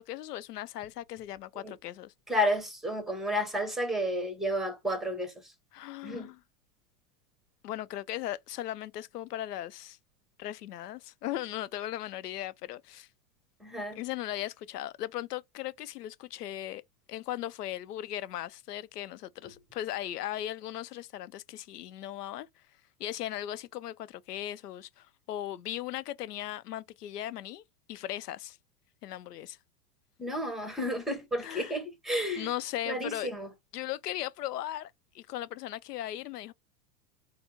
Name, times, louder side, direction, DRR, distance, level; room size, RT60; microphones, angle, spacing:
voice 1, 0.0-2.1 5.7-6.4 7.6-10.0 10.4-13.1 14.0-16.8 17.1-22.5 23.0-28.6 29.0-29.6 31.4-31.8 32.4-33.3 33.7-36.5, left 13 dB, 90° left, 0.6 m, -38 dB
voice 2, 2.3-5.5 6.0-6.3 13.6-14.0 30.2-32.5 32.9-33.5, equal, ahead, 1.0 m, -31 dB
4.2 x 2.1 x 4.0 m
hypercardioid pair, 115°, 45 cm